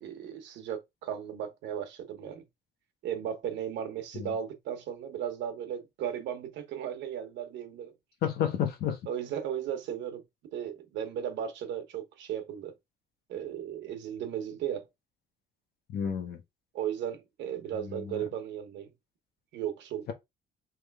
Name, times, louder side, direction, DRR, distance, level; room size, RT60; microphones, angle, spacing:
voice 1, 0.0-2.4 3.0-7.9 9.1-10.2 10.5-12.7 13.3-14.8 16.7-18.9 19.5-20.0, right 9 dB, 80° right, 1.0 m, -36 dB
voice 2, 8.2-9.0 15.9-16.4 17.9-18.2, left 8 dB, 60° left, 1.0 m, -31 dB
3.5 x 3.2 x 3.5 m
cardioid pair, 175°, 18 cm